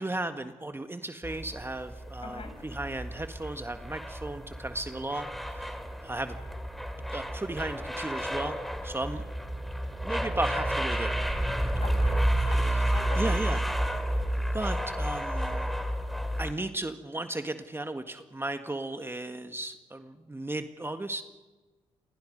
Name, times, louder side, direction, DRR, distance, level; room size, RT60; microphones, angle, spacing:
voice 1, 0.0-5.7 6.0-6.4 7.1-8.6 8.8-9.2 10.0-11.2 12.5-12.8 13.2-13.6 14.4-15.7 16.4-21.2, right 2 dB, 15° right, 7 dB, 1.8 m, -35 dB
sound 1, 1.2-16.5, right 1 dB, ahead, 3.3 m, -31 dB
voice 2, 2.2-2.6 11.8-12.7 12.9-13.6, left 3 dB, 45° left, 5 dB, 7.5 m, -42 dB
29.0 x 22.0 x 5.4 m, 1.2 s
hypercardioid pair, 50°, 14 cm